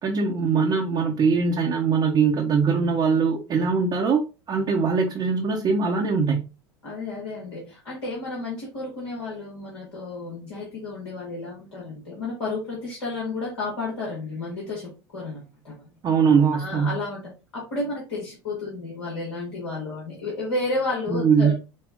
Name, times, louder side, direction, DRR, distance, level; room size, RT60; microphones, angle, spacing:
voice 1, 0.0-4.2 4.5-6.4 16.0-16.9 21.1-21.5, right 5 dB, 30° right, 0.9 m, -21 dB
voice 2, 6.8-15.9 16.5-17.2 17.5-21.5, left 3 dB, 65° left, 1.7 m, -32 dB
5.3 x 2.3 x 3.6 m
figure-of-eight pair, 80°, 14 cm